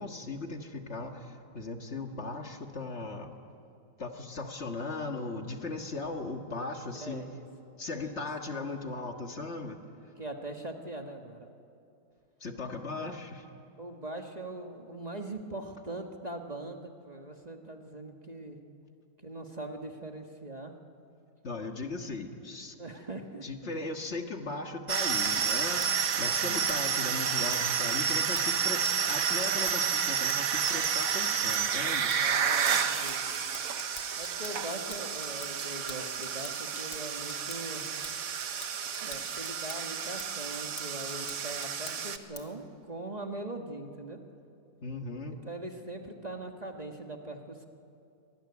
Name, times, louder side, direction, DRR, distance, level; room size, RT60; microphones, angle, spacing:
voice 1, 0.0-3.3 4.0-7.2 7.8-9.8 12.4-13.5 21.4-22.8 23.4-32.1 44.8-45.4, left 3 dB, 45° left, 4 dB, 1.9 m, -38 dB
voice 2, 6.9-7.4 7.9-8.7 10.2-11.5 13.0-13.1 13.8-18.6 19.2-20.7 22.8-23.4 32.2-33.6 34.2-37.8 39.0-44.2 45.4-47.7, right 2 dB, 25° right, 3 dB, 1.5 m, -41 dB
sound 1, 24.9-42.2, right 7 dB, 65° right, 1.5 m, -30 dB
sound 2, 25.5-42.7, left 4 dB, 90° left, 2.5 m, -49 dB
25.0 x 19.5 x 9.7 m, 2.6 s
omnidirectional pair, 1.6 m